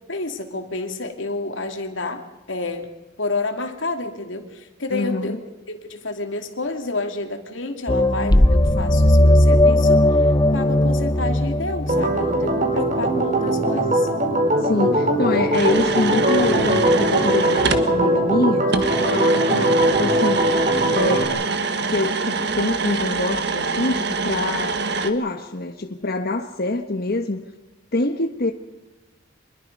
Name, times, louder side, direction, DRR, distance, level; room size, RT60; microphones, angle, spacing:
voice 1, 0.1-2.9 3.2-5.4 5.7-10.0 10.5-14.1, left 2 dB, 85° left, 5 dB, 2.8 m, -29 dB
voice 2, 4.9-5.4 14.6-18.7 19.0-20.5 20.9-21.3 21.9-24.8 25.0-27.4 27.9-28.5, left 2 dB, 55° left, 5 dB, 1.3 m, -25 dB
sound 1, 7.9-12.6, left 1 dB, 20° left, 0.8 m, -17 dB
Organ, 11.9-21.2, right 1 dB, 40° right, 4.5 m, -20 dB
sound 2, 15.5-17.9 18.7-25.1, right 4 dB, 65° right, 1.6 m, -25 dB
25.5 x 21.5 x 5.4 m, 1.1 s
head